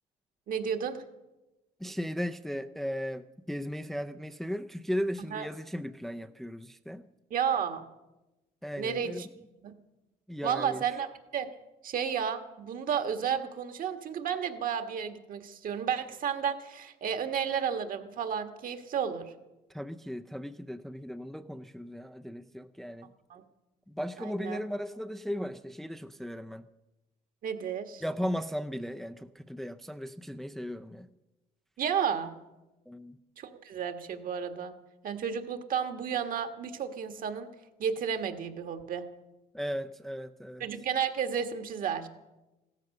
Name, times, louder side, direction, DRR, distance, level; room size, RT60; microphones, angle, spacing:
voice 1, 0.5-1.0 5.3-5.5 7.3-7.8 8.8-9.3 9.6-9.7 10.4-11.5 11.8-19.3 23.3-23.4 24.2-24.6 27.4-28.0 31.8-32.3 33.4-34.7 35.0-37.5 37.8-39.0 40.6-42.1, right 7 dB, 55° right, 8 dB, 1.5 m, -32 dB
voice 2, 1.8-7.1 8.6-9.3 10.3-10.9 19.7-23.1 23.9-26.7 28.0-31.1 32.9-33.2 39.5-40.6, equal, ahead, 8 dB, 0.5 m, -36 dB
16.0 x 13.5 x 6.5 m, 1.0 s
cardioid pair, 110°, 17 cm